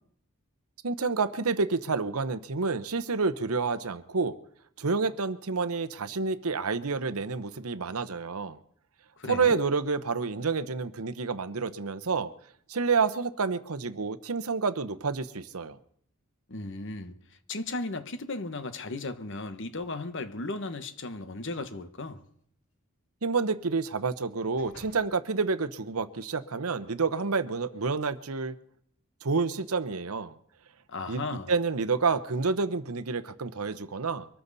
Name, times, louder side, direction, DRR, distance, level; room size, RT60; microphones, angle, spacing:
voice 1, 0.8-4.4 4.8-8.6 9.3-12.3 12.7-15.8 23.2-28.5 29.2-30.3 31.1-34.3, right 4 dB, 75° right, 0.9 m, -29 dB
voice 2, 9.2-9.6 16.5-17.2 17.5-22.2 30.9-31.5, left 2 dB, 55° left, 1.2 m, -36 dB
sound 1, 19.7-20.3 21.4-21.7 22.2-22.3 23.9-25.1 25.7-25.8, left 1 dB, 85° left, 6.8 m, -55 dB
24.0 x 13.5 x 4.1 m
head